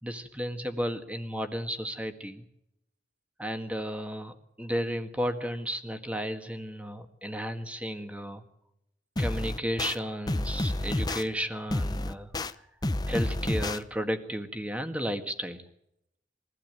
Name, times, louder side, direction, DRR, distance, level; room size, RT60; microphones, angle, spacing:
voice 1, 0.0-2.4 3.4-8.4 9.2-12.6 13.1-15.6, equal, 5° right, 7 dB, 1.7 m, -33 dB
sound 1, 9.2-9.9 10.3-11.2 11.7-12.5 12.8-13.8, left 1 dB, 20° left, 0.7 m, -29 dB
22.5 x 15.5 x 9.1 m, 0.81 s
head